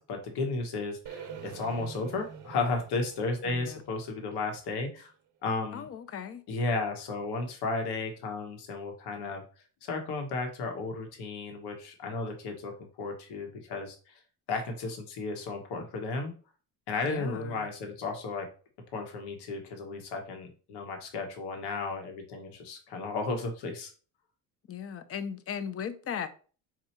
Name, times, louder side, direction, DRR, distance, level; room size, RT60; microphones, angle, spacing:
voice 1, 0.0-5.1 5.4-5.9 6.5-9.4 9.8-14.2 14.5-16.3 16.9-18.5 18.9-23.9, left 3 dB, 70° left, 1.2 m, -34 dB
sound 1, 1.1-5.1, right 6 dB, 45° right, 0.8 m, -46 dB
voice 2, 3.4-3.8 5.7-6.4 17.0-17.7 24.7-26.3, left 7 dB, 35° left, 0.5 m, -37 dB
4.5 x 2.4 x 4.3 m
cardioid pair, 95°, 42 cm